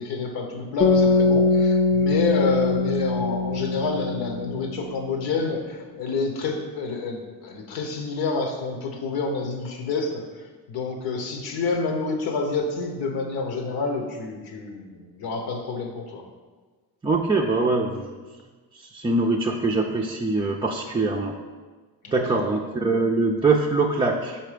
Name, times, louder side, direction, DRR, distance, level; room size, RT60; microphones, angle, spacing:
voice 1, 0.0-10.2 10.7-16.2 22.0-22.6, left 4 dB, 85° left, 4 dB, 1.1 m, -28 dB
sound 1, 0.8-5.0, left 3 dB, 35° left, 0.5 m, -22 dB
voice 2, 17.0-18.2 18.7-21.3 22.1-24.4, right 3 dB, 15° right, -2 dB, 0.4 m, -23 dB
5.8 x 4.3 x 5.0 m, 1.4 s
cardioid pair, 110°, 36 cm